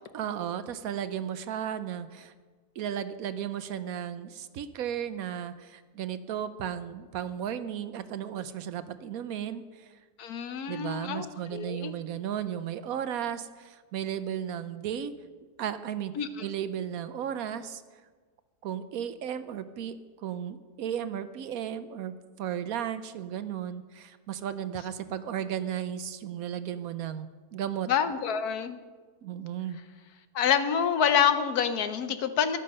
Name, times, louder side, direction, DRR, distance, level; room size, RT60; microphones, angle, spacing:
voice 1, 0.1-2.3 2.8-10.0 10.7-15.1 15.6-16.1 16.4-17.8 18.6-20.0 20.2-27.9 29.2-29.8, right 9 dB, 70° right, 12 dB, 1.0 m, -34 dB
voice 2, 10.2-11.3 11.5-11.9 16.2-16.3 27.9-28.8 30.3-32.6, left 8 dB, 70° left, 10 dB, 1.3 m, -27 dB
13.0 x 11.5 x 5.4 m, 1.4 s
omnidirectional pair, 1.8 m